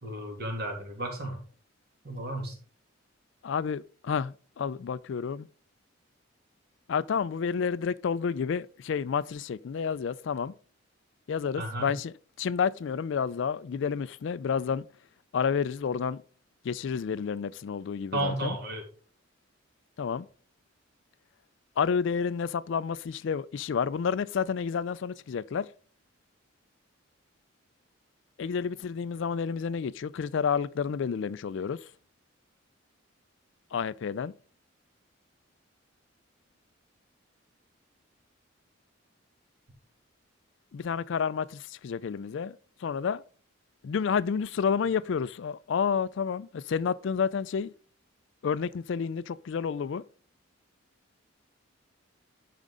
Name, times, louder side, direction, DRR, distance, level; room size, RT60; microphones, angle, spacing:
voice 1, 0.0-1.4 2.0-2.6 11.6-11.9 18.1-18.8, right 1 dB, 50° right, 2.6 m, -33 dB
voice 2, 3.4-5.5 6.9-10.5 11.3-14.9 15.3-16.2 16.6-18.5 20.0-20.2 21.8-25.7 28.4-31.8 33.7-34.3 40.7-42.6 42.8-43.2 43.8-47.7 48.4-50.0, left 6 dB, 60° left, 0.3 m, -30 dB
11.0 x 5.1 x 3.8 m
head